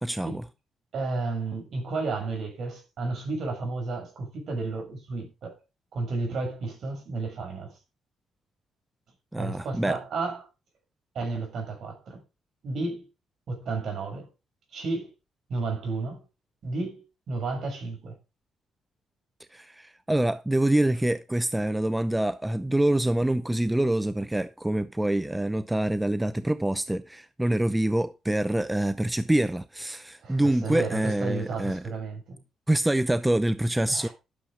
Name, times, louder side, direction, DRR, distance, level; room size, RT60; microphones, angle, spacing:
voice 1, 0.0-0.4 9.3-10.0 19.5-31.8 32.7-34.1, right 1 dB, 10° right, 0.7 m, -26 dB
voice 2, 0.9-5.6 5.9-7.8 9.4-10.4 11.1-12.2 12.6-13.1 13.5-14.3 14.7-15.1 15.5-16.2 16.6-18.1 30.2-32.4 33.9-34.1, right 3 dB, 60° right, 6.3 m, -32 dB
12.0 x 6.9 x 5.1 m
cardioid pair, 90°, 0 cm